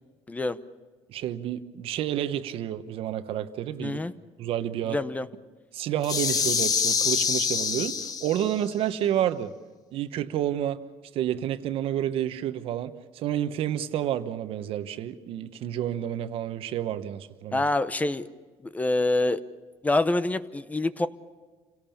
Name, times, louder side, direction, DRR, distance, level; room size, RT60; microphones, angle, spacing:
voice 1, 1.1-4.0 4.4-5.0 5.7-9.5 9.9-10.8 11.1-17.6, right 11 dB, 70° right, 1.1 m, -29 dB
voice 2, 3.8-4.1 4.9-5.3 17.5-18.3 18.6-19.4 19.8-21.1, left 2 dB, 15° left, 0.8 m, -26 dB
sound 1, 6.0-8.6, left 6 dB, 40° left, 1.1 m, -26 dB
28.0 x 17.5 x 7.2 m
cardioid pair, 120°, 10 cm